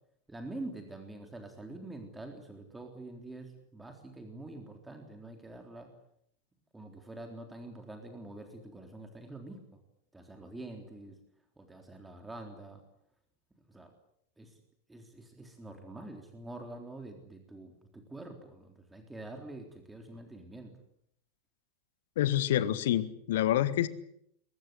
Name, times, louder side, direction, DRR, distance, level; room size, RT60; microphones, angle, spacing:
voice 1, 0.3-5.9 6.7-9.8 10.1-11.2 11.6-12.8 13.7-13.9 14.4-14.6 14.9-20.7, right 2 dB, 10° right, 4 dB, 3.6 m, -46 dB
voice 2, 22.2-23.9, left 12 dB, 55° left, 15 dB, 1.6 m, -27 dB
23.5 x 22.5 x 8.1 m, 0.72 s
figure-of-eight pair, 90°, 0 cm